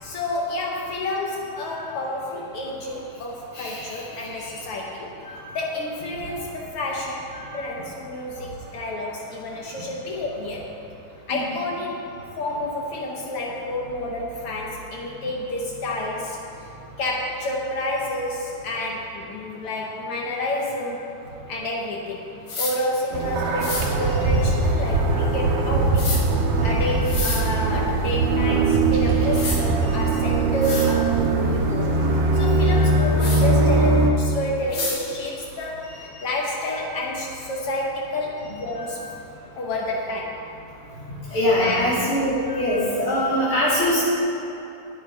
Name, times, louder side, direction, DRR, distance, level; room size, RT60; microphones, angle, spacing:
voice 1, 0.0-5.1 5.5-7.2 7.5-10.7 11.3-12.1 12.4-21.0 21.5-22.2 22.6-26.3 26.6-32.0 32.3-39.0 39.6-40.4 41.6-42.0, left 1 dB, 80° left, -2 dB, 1.3 m, -29 dB
voice 2, 3.5-3.9 4.2-4.3 5.3-5.4 6.3-6.4 7.3-7.4 8.3-8.4 11.3-11.4 32.7-32.9 38.8-38.9 41.3-44.0, left 1 dB, 40° left, -8 dB, 3.4 m, -23 dB
sound 1, 22.5-22.7 23.6-23.8 26.0-26.2 27.0-27.4 28.9-29.0 29.3-29.6 30.2-30.3 30.6-30.9 33.2-33.4 34.7-35.0, left 3 dB, 55° left, 2.6 m, -28 dB
sound 2, 23.1-34.1, right 2 dB, 70° right, 2.0 m, -21 dB
9.7 x 9.0 x 4.7 m, 2.9 s
omnidirectional pair, 3.9 m